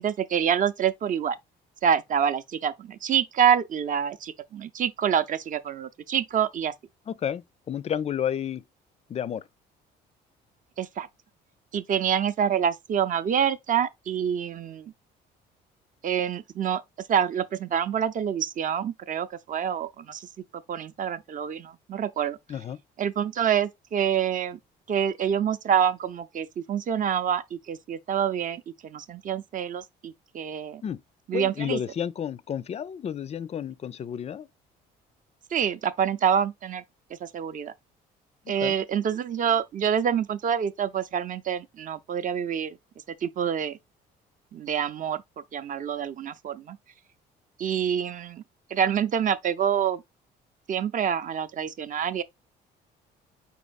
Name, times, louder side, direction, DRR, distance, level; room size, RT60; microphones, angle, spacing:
voice 1, 0.0-1.4 1.8-6.7 10.8-11.1 11.7-14.9 16.0-16.8 17.1-20.2 20.7-22.4 23.0-24.6 24.9-30.8 31.3-31.8 35.5-36.8 37.2-37.7 38.5-42.8 43.2-43.8 44.5-45.2 45.5-46.8 47.6-48.4 48.7-50.0 50.7-52.2, right 8 dB, 45° right, 0.5 m, -26 dB
voice 2, 7.1-8.6 9.1-9.4 22.5-22.8 30.8-31.0 31.3-34.5 38.5-38.8, left 9 dB, 35° left, 0.4 m, -31 dB
4.5 x 4.2 x 2.4 m
cardioid pair, 85°, 19 cm